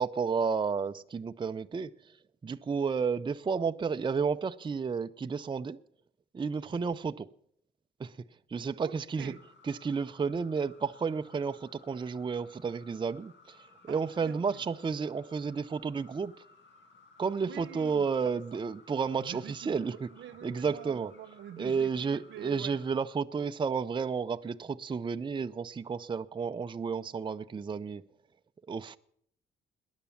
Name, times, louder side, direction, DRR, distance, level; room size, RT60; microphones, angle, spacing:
voice 1, 0.0-1.9 2.4-5.8 6.3-7.3 8.0-8.1 8.5-9.3 9.6-13.6 13.8-16.3 17.2-20.1 20.4-21.1 21.6-28.0 28.7-29.0, right 5 dB, 25° right, 0.6 m, -32 dB
voice 2, 8.8-9.4 13.9-14.6 17.4-18.3 19.2-22.8, right 11 dB, 75° right, 1.0 m, -46 dB
sound 1, 9.2-23.0, left 3 dB, 70° left, 3.1 m, -59 dB
19.0 x 10.5 x 7.2 m
cardioid pair, 90°, 20 cm